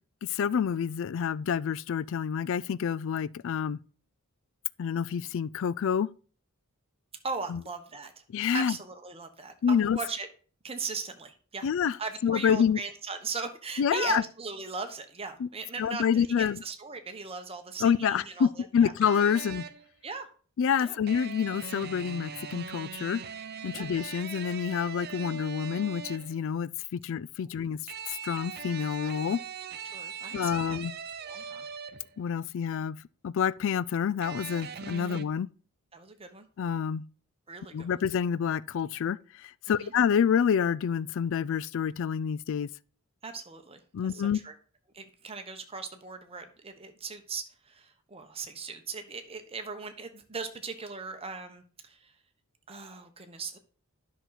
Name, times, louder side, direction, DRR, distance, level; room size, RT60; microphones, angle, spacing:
voice 1, 0.2-3.8 4.8-6.1 7.5-7.6 8.3-8.7 9.6-10.0 11.6-12.0 12.2-12.8 13.8-14.2 15.4-15.5 15.8-16.6 17.8-19.7 20.6-23.2 23.6-27.8 28.1-29.4 30.3-30.9 32.2-33.0 33.2-35.5 36.6-37.0 37.7-42.7 43.9-44.4, left 7 dB, 60° left, 0.3 m, -28 dB
voice 2, 7.2-8.2 8.5-10.3 10.6-11.7 12.0-18.9 20.0-20.3 20.8-21.0 23.7-23.9 27.4-27.7 29.9-30.8 31.2-31.7 35.0-35.2 35.9-36.5 37.5-38.0 39.7-39.9 43.2-44.5 44.9-52.1 52.7-53.6, right 4 dB, 25° right, 1.1 m, -39 dB
sound 1, 19.0-19.9 21.1-26.4 27.9-32.2 34.2-35.2, right 7 dB, 45° right, 0.6 m, -41 dB
10.5 x 6.1 x 4.1 m
head